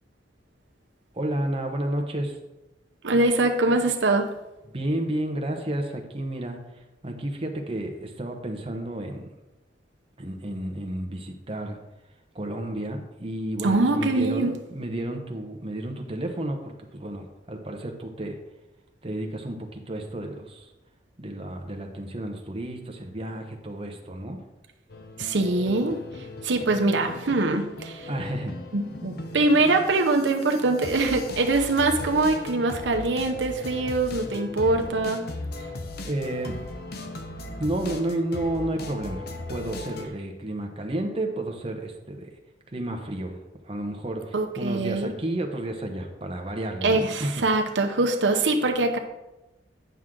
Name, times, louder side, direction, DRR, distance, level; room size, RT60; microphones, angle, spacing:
voice 1, 1.1-2.4 4.7-6.6 7.0-9.3 10.2-11.8 12.3-16.6 16.9-18.4 19.0-20.7 21.2-24.4 28.1-28.5 36.0-36.6 37.6-42.3 42.7-43.4 43.6-47.3, right 1 dB, 30° right, 2 dB, 1.0 m, -31 dB
voice 2, 3.0-4.3 13.6-14.6 25.2-28.1 28.7-35.2 44.3-45.1 46.8-49.0, right 2 dB, 80° right, 4 dB, 0.8 m, -23 dB
sound 1, 24.9-40.1, left 2 dB, 60° left, 0.8 m, -38 dB
9.1 x 6.3 x 3.8 m, 1.0 s
head